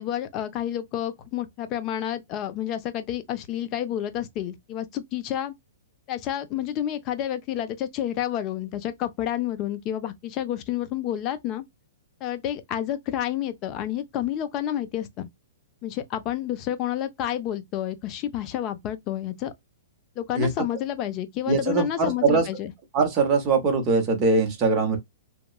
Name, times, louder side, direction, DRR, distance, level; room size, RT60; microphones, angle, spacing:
voice 1, 0.0-5.5 6.1-11.6 12.2-15.3 15.8-19.5 20.2-22.7, left 11 dB, 25° left, 0.4 m, -29 dB
voice 2, 21.5-22.4 22.9-25.0, right 4 dB, 25° right, 0.8 m, -22 dB
2.8 x 2.2 x 2.3 m
hypercardioid pair, 165°, 0 cm